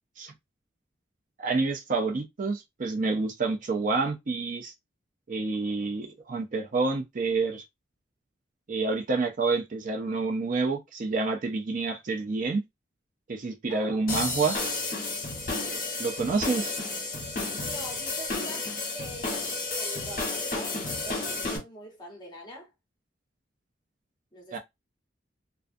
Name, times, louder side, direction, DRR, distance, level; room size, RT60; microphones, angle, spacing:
voice 1, 1.4-4.7 5.3-7.6 8.7-12.6 13.3-14.6 16.0-16.7 24.5-24.6, right 3 dB, 45° right, 0.4 m, -28 dB
voice 2, 13.7-14.3 17.6-22.7 24.3-24.6, equal, 25° left, 0.9 m, -44 dB
sound 1, 14.1-21.6, left 3 dB, 45° left, 1.0 m, -32 dB
2.3 x 2.3 x 2.5 m
head